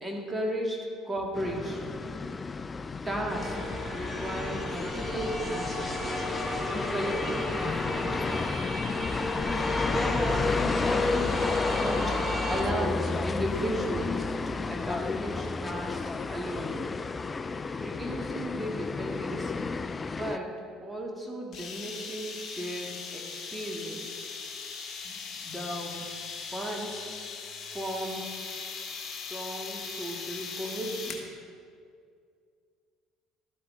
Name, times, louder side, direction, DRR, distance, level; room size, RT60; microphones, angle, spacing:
voice 1, 0.0-2.0 3.1-3.6 3.9-5.9 6.7-8.3 9.8-16.8 17.8-19.7 20.2-24.0 25.0-26.1 26.5-27.1 27.7-28.3 29.1-31.2, right 1 dB, 15° right, 0 dB, 1.8 m, -35 dB
sound 1, 1.3-20.4, left 4 dB, 25° left, 0.4 m, -32 dB
sound 2, 3.3-12.6, left 1 dB, 10° left, 1.8 m, -34 dB
sound 3, 21.5-31.3, left 5 dB, 45° left, 1.4 m, -39 dB
12.5 x 8.7 x 3.7 m, 2.2 s
hypercardioid pair, 60°, 0 cm